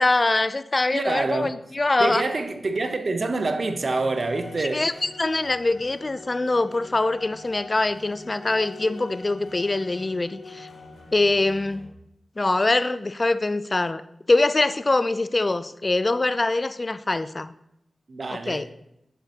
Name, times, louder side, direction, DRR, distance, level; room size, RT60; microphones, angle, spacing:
voice 1, 0.0-2.2 4.7-10.7 11.1-11.9 12.4-14.0 14.3-17.5 18.3-18.7, left 2 dB, 40° left, 0.3 m, -23 dB
voice 2, 0.9-1.6 2.0-5.0 18.1-18.7, right 3 dB, 60° right, 0.6 m, -26 dB
sound 1, 4.0-11.9, left 3 dB, 70° left, 0.9 m, -45 dB
7.1 x 5.8 x 2.8 m
cardioid pair, 45°, 0 cm